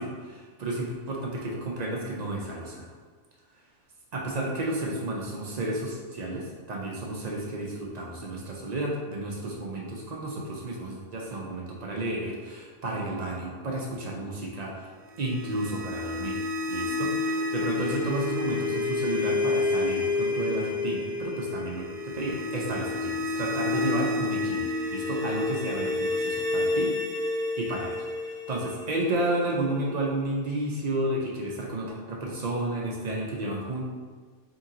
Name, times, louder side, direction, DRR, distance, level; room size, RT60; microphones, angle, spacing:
voice 1, 0.0-2.9 4.1-14.9 15.2-16.4 16.7-26.9 27.6-33.8, right 1 dB, 55° right, -3 dB, 0.4 m, -32 dB
sound 1, 15.1-30.1, left 3 dB, 70° right, 1.1 m, -30 dB
3.7 x 2.8 x 3.7 m, 1.5 s
omnidirectional pair, 1.4 m